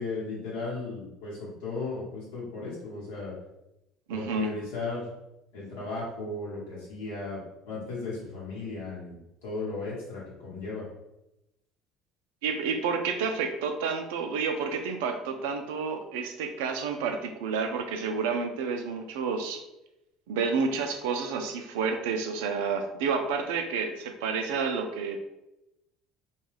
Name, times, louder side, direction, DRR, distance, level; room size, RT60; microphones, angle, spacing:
voice 1, 0.0-3.3 4.1-5.1 5.5-10.8, left 3 dB, 85° left, -6 dB, 1.1 m, -36 dB
voice 2, 4.1-4.5 12.4-19.6 20.3-25.3, right 5 dB, 80° right, 5 dB, 0.3 m, -30 dB
2.3 x 2.2 x 3.2 m, 0.90 s
hypercardioid pair, 70°, 0 cm